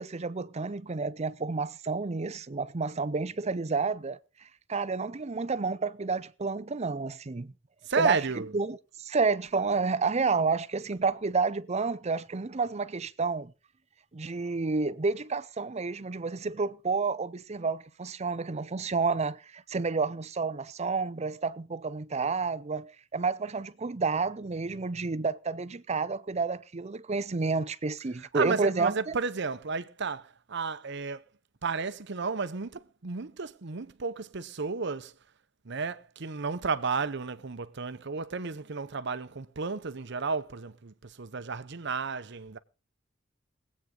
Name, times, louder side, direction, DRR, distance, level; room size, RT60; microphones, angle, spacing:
voice 1, 0.0-4.2 4.7-7.5 8.0-8.2 8.5-13.5 14.1-29.2, right 4 dB, 35° right, 0.6 m, -30 dB
voice 2, 7.9-8.5 28.2-31.2 31.6-35.1 35.6-42.6, right 4 dB, 60° right, 0.8 m, -32 dB
22.0 x 8.6 x 3.8 m
head